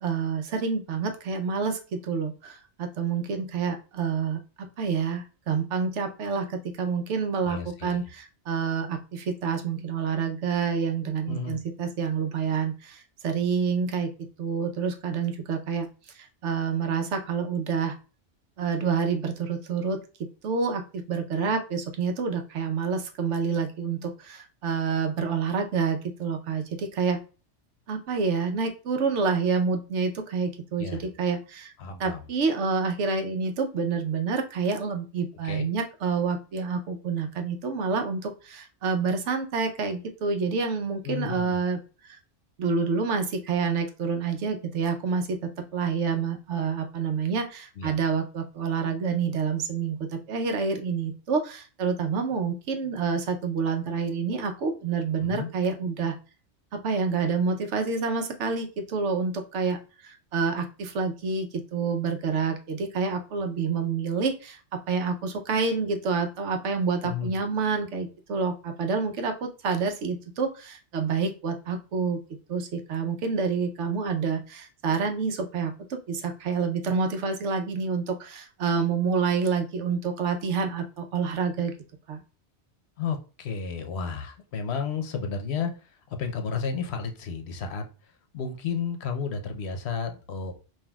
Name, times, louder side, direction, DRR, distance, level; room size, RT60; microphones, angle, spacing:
voice 1, 0.0-4.4 4.8-14.1 14.4-15.9 16.2-18.0 18.6-20.0 20.4-27.2 27.9-31.7 32.0-41.8 42.0-42.2 42.6-45.4 45.7-56.2 56.7-59.8 60.0-72.2 72.5-81.7 82.1-82.2, right 5 dB, 85° right, 5 dB, 1.0 m, -28 dB
voice 2, 7.4-8.1 11.3-11.6 30.8-31.0 31.8-32.2 35.4-35.7 41.0-41.6 47.8-47.9 55.2-55.5 67.0-67.4 83.0-85.7 86.1-87.8 88.3-90.6, left 6 dB, 70° left, 5 dB, 0.9 m, -32 dB
5.6 x 2.6 x 2.3 m, 0.34 s
omnidirectional pair, 1.2 m